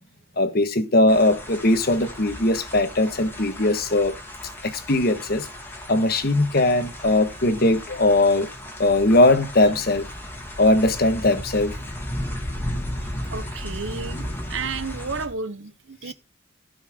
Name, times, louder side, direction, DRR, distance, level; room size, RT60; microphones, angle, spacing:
voice 1, 0.4-4.1 4.6-5.5 5.9-8.5 8.8-10.1 10.6-11.7 16.1-16.2, left 2 dB, 50° left, 1.3 m, -20 dB
sound 1, 1.1-15.3, left 1 dB, 10° left, 2.2 m, -35 dB
voice 2, 13.3-16.1, right 4 dB, 75° right, 0.9 m, -32 dB
16.0 x 5.8 x 3.5 m
head